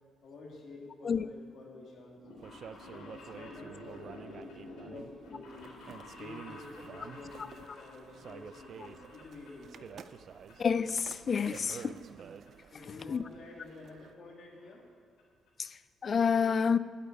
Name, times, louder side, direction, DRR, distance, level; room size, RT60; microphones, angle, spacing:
voice 1, 0.2-2.3 2.9-5.8 6.2-10.1 12.7-14.9, left 3 dB, 65° left, 2.7 m, -49 dB
sound 1, 2.1-9.8 10.1-10.8 11.1-12.2 12.5-12.6 13.5-13.6 13.8-13.9 14.1-14.2 14.5-14.8 15.2-15.3 15.5-15.6, left 2 dB, 80° left, 3.5 m, -51 dB
sound 2, 2.4-14.1, right 7 dB, 60° right, 0.4 m, -50 dB
voice 2, 10.6-11.9 13.1-13.2 15.6-16.8, left 6 dB, 45° left, 0.4 m, -29 dB
8.3 x 8.3 x 9.0 m
cardioid pair, 90°, 0 cm